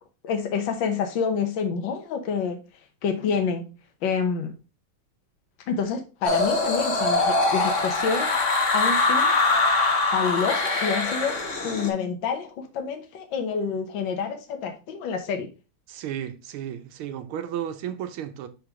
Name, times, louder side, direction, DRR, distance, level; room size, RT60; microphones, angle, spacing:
voice 1, 0.2-2.6 3.0-3.7 4.0-4.5 5.7-8.4 8.7-9.3 10.1-11.4 11.6-15.5, left 6 dB, 65° left, 1.7 m, -27 dB
sound 1, 6.2-11.9, left 3 dB, 40° left, 1.3 m, -23 dB
voice 2, 15.9-18.5, right 10 dB, 85° right, 1.7 m, -33 dB
6.3 x 5.0 x 3.6 m
omnidirectional pair, 2.3 m